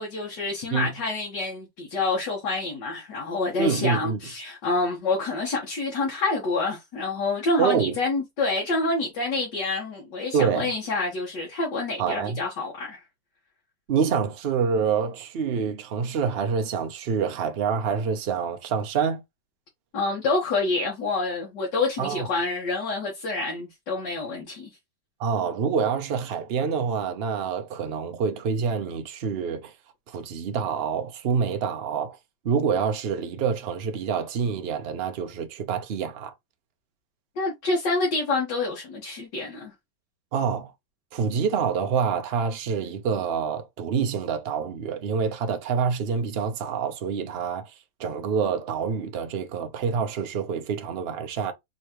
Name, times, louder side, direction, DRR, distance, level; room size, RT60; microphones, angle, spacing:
voice 1, 0.0-13.0 19.9-24.7 37.4-39.7, left 3 dB, 70° left, 2.0 m, -27 dB
voice 2, 3.6-4.2 7.6-7.9 10.3-10.7 12.0-12.4 13.9-19.2 22.0-22.3 25.2-29.7 30.1-32.2 32.4-36.3 40.3-40.7 41.1-47.7 48.0-51.5, right 6 dB, 55° right, 0.7 m, -26 dB
5.5 x 3.2 x 2.9 m
omnidirectional pair, 2.0 m